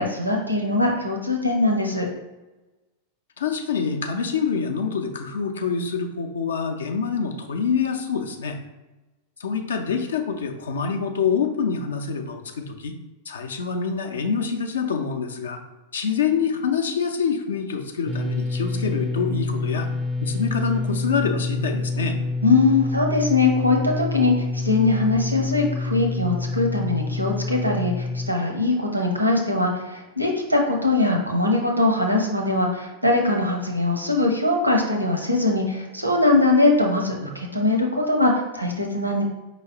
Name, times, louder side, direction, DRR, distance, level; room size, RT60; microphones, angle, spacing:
voice 1, 0.0-2.1 22.4-39.2, left 2 dB, 85° right, 1 dB, 0.7 m, -21 dB
voice 2, 3.4-8.6 9.4-12.9 13.3-15.6 15.9-19.9 20.2-22.2, left 6 dB, 65° left, 5 dB, 0.5 m, -26 dB
sound 1, 18.1-28.3, left 3 dB, 15° right, 0.4 m, -27 dB
5.0 x 3.1 x 2.8 m, 1.1 s
figure-of-eight pair, 90°, 0 cm